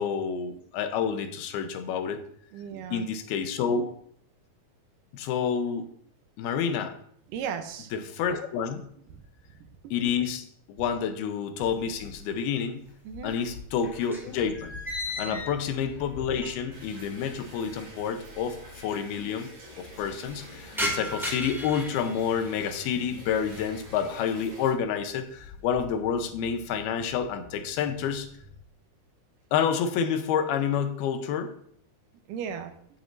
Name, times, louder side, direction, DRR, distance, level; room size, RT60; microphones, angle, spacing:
voice 1, 0.0-2.2 2.9-3.9 5.1-5.9 6.4-7.0 7.9-8.8 9.9-12.9 13.2-14.8 15.2-19.5 19.8-28.3 29.5-31.5, left 7 dB, 80° left, 7 dB, 2.8 m, -29 dB
voice 2, 2.5-3.0 7.3-7.9 9.8-9.9 13.1-13.3 15.2-15.4 32.3-32.7, right 7 dB, 75° right, 7 dB, 2.2 m, -36 dB
sound 1, 11.6-12.5 12.8-16.9 17.1-17.2 18.1-18.2 18.4-18.5 18.8-19.2 19.6-22.9 23.3-23.8 24.2-24.6 25.0-25.9, left 1 dB, ahead, 1.5 m, -38 dB
sound 2, 14.2-28.6, left 3 dB, 45° right, 4.8 m, -52 dB
sound 3, 16.7-24.7, right 1 dB, 20° right, 4.0 m, -48 dB
14.5 x 7.6 x 2.7 m, 0.65 s
omnidirectional pair, 4.5 m